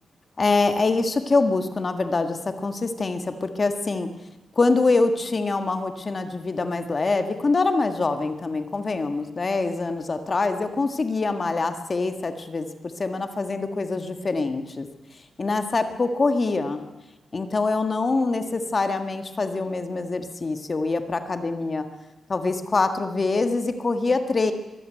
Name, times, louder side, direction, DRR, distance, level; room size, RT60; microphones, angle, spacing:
voice 1, 0.4-4.1 4.5-12.7 13.0-14.9 15.4-16.8 17.3-21.8 22.3-24.5, left 3 dB, 30° left, 7 dB, 1.6 m, -24 dB
23.5 x 15.0 x 9.1 m, 1.0 s
wide cardioid pair, 155°, 0 cm